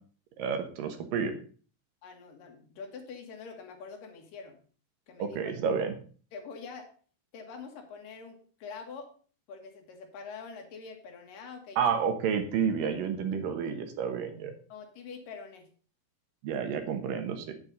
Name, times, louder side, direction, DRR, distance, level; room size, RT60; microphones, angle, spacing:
voice 1, 0.4-1.4 5.2-5.9 11.8-14.5 16.4-17.5, right 7 dB, 80° right, 6 dB, 2.8 m, -30 dB
voice 2, 2.0-4.6 5.1-5.5 6.3-6.9 7.3-9.1 9.5-11.8 14.7-15.7, left 5 dB, 75° left, 4 dB, 3.1 m, -45 dB
8.8 x 8.1 x 4.0 m, 0.41 s
omnidirectional pair, 3.9 m